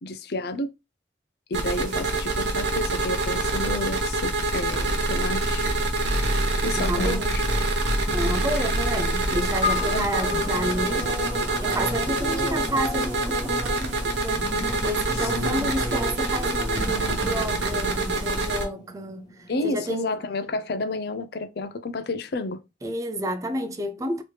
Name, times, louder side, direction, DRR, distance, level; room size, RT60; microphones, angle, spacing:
voice 1, 0.0-0.7 1.5-5.7 6.6-7.4 8.1-8.2 8.6-8.7 9.9-10.1 15.2-15.7 19.5-22.6, left 2 dB, 65° left, 0.5 m, -31 dB
sound 1, 1.5-18.6, right 2 dB, 90° right, 0.9 m, -26 dB
voice 2, 6.8-7.4 8.1-20.2 22.8-24.2, equal, 20° right, 0.4 m, -31 dB
sound 2, 9.6-14.2, left 5 dB, 45° left, 1.2 m, -34 dB
Singing / Musical instrument, 10.0-20.1, equal, 20° left, 0.9 m, -36 dB
3.2 x 2.9 x 3.2 m
head